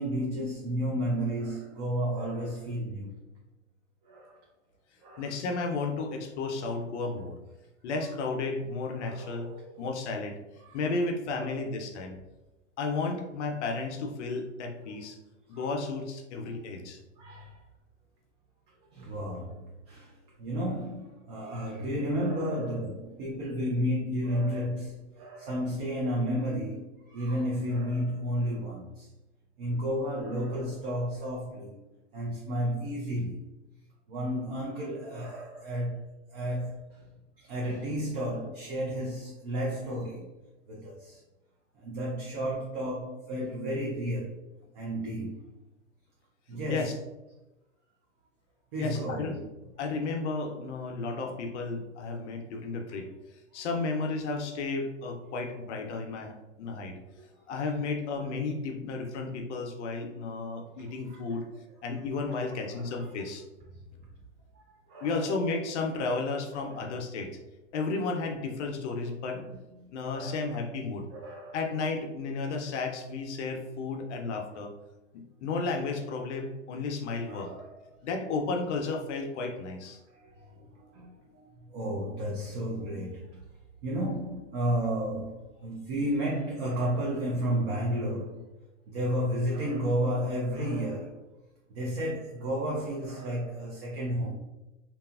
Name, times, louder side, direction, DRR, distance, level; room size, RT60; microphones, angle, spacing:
voice 1, 0.0-3.1 4.0-4.4 5.0-5.3 9.0-9.9 10.6-10.8 11.3-11.6 15.5-15.7 16.4-16.6 17.2-17.6 18.9-20.1 20.4-29.1 29.6-31.8 32.1-33.4 34.1-37.0 37.4-40.3 40.7-41.2 41.8-44.4 44.7-45.4 46.5-46.9 48.7-49.5 53.6-53.7 57.2-57.7 60.9-61.4 62.3-63.1 64.5-64.6 64.9-65.3 66.6-66.8 69.3-69.5 69.8-70.6 71.1-71.6 77.3-77.7 80.1-83.4 83.8-88.4 88.9-91.2 91.7-94.3, equal, 45° right, 0.6 m, -32 dB
voice 2, 5.2-7.4 7.8-9.5 9.8-10.4 10.7-12.2 12.8-15.2 15.5-17.0 46.7-46.9 48.8-49.3 49.8-53.1 53.5-57.0 57.5-61.4 61.8-63.4 65.0-67.4 67.7-69.4 69.9-71.1 71.5-74.7 75.1-77.5 78.0-80.0, left 3 dB, 60° left, 0.5 m, -33 dB
2.9 x 2.3 x 2.3 m
hypercardioid pair, 135°, 39 cm